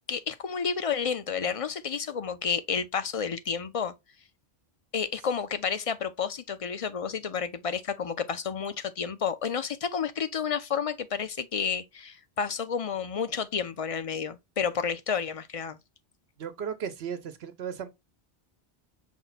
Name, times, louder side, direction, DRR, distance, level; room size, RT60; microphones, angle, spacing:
voice 1, 0.1-3.9 4.9-15.8, left 6 dB, 45° left, 0.5 m, -31 dB
voice 2, 16.4-17.9, right 7 dB, 85° right, 1.0 m, -35 dB
6.1 x 2.2 x 4.0 m
omnidirectional pair, 1.0 m